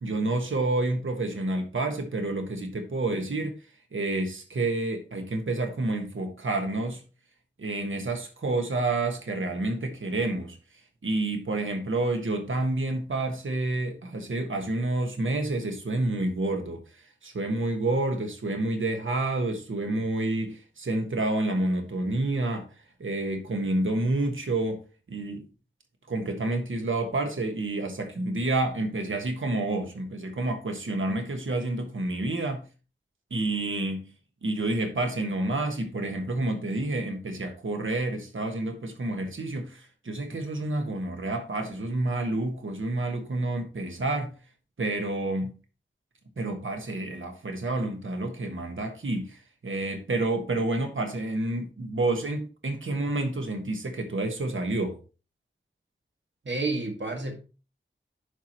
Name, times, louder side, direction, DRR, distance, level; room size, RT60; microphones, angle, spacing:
voice 1, 0.0-3.6 3.9-7.0 7.6-10.6 11.0-16.8 17.2-22.7 23.0-25.4 26.1-32.7 33.3-34.1 34.4-44.3 44.8-45.5 46.4-55.0, right 2 dB, 85° right, 1.4 m, -29 dB
voice 2, 56.4-57.3, right 3 dB, 65° right, 1.9 m, -30 dB
11.5 x 4.8 x 3.0 m
wide cardioid pair, 80°, 20 cm